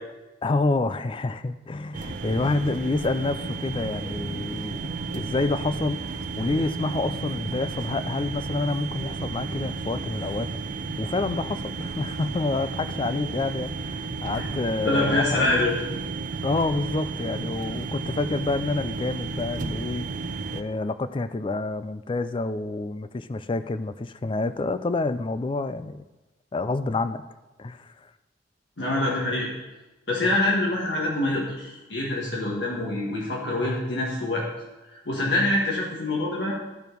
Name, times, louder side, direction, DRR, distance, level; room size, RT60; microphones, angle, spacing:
voice 1, 0.4-10.5 11.0-15.6 16.4-26.0 26.5-27.2 27.6-27.9, left 3 dB, 30° left, 12 dB, 0.4 m, -28 dB
sound 1, 1.9-20.6, right 4 dB, 45° right, 0.6 m, -33 dB
voice 2, 14.8-15.7 28.8-29.5 30.1-34.5 35.1-36.5, left 2 dB, 75° left, -3 dB, 1.5 m, -25 dB
12.5 x 4.7 x 5.2 m, 1.1 s
head